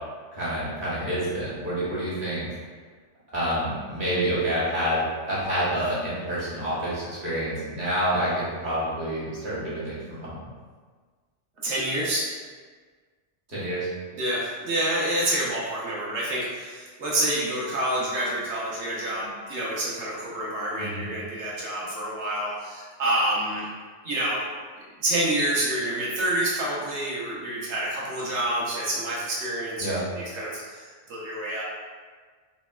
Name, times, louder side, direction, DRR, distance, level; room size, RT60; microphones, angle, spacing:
voice 1, 0.3-2.5 3.3-10.4 13.5-13.9 20.8-21.0 29.8-30.0, equal, 45° right, -9 dB, 1.2 m, -28 dB
voice 2, 11.6-12.3 14.1-23.7 24.0-24.5 25.0-31.6, right 1 dB, 70° right, -6 dB, 1.1 m, -28 dB
4.0 x 2.1 x 2.2 m, 1.5 s
omnidirectional pair, 1.2 m